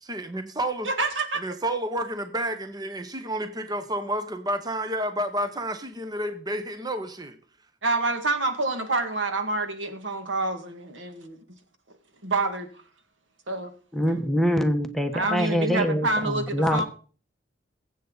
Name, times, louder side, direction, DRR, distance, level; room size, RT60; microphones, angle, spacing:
voice 1, 0.0-0.9 1.4-7.4, right 1 dB, 20° right, 1.0 m, -30 dB
voice 2, 0.8-1.4 7.8-11.4 12.2-12.7 13.5-13.7 15.1-16.8, right 2 dB, 80° right, 2.0 m, -27 dB
voice 3, 13.9-16.8, equal, ahead, 1.1 m, -24 dB
21.5 x 8.3 x 4.0 m
head